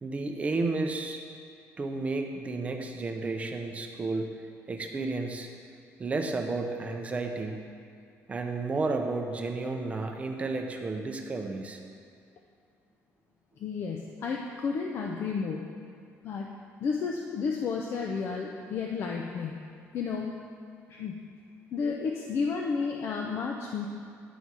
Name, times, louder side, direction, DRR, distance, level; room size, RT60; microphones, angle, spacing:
voice 1, 0.0-1.2 1.8-4.3 4.7-5.5 6.0-7.7 8.3-11.8, right 3 dB, 25° right, 4 dB, 0.6 m, -32 dB
voice 2, 13.6-15.7 16.2-16.5 16.8-19.6 19.9-20.3 20.9-21.2 21.7-23.9, left 5 dB, 50° left, 0 dB, 0.5 m, -32 dB
10.0 x 4.1 x 4.7 m, 2.3 s
cardioid pair, 150°, 6 cm